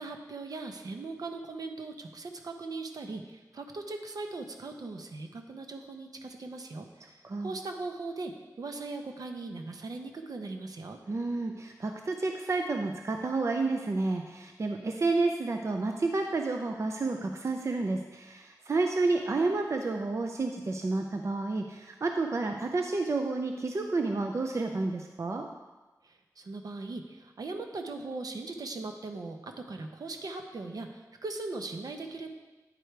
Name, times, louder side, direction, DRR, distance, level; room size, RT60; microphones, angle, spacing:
voice 1, 0.0-11.0 26.4-32.3, right 3 dB, 70° right, 5 dB, 0.8 m, -39 dB
voice 2, 11.1-25.4, right 3 dB, 45° right, 4 dB, 0.5 m, -30 dB
9.1 x 4.9 x 4.6 m, 1.2 s
wide cardioid pair, 90°, 7 cm